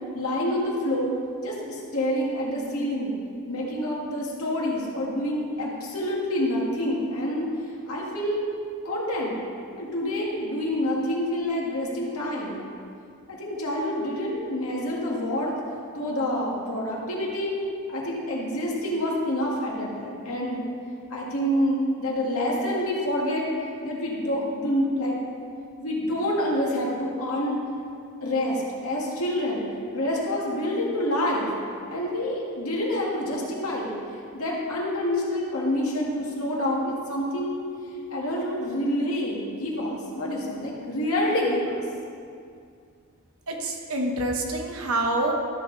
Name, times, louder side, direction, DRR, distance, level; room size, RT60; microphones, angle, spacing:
voice 1, 0.1-3.1 3.5-7.6 7.9-8.5 8.8-9.4 9.8-12.6 13.3-15.5 15.9-17.6 17.9-20.6 21.1-23.5 23.8-25.2 25.8-27.6 28.2-29.6 29.9-31.5 31.9-33.9 34.3-37.6 38.1-41.8, left 1 dB, 75° left, -4 dB, 2.0 m, -27 dB
voice 2, 43.5-45.3, right 2 dB, 70° right, 1 dB, 1.2 m, -26 dB
13.0 x 6.3 x 4.0 m, 2.3 s
head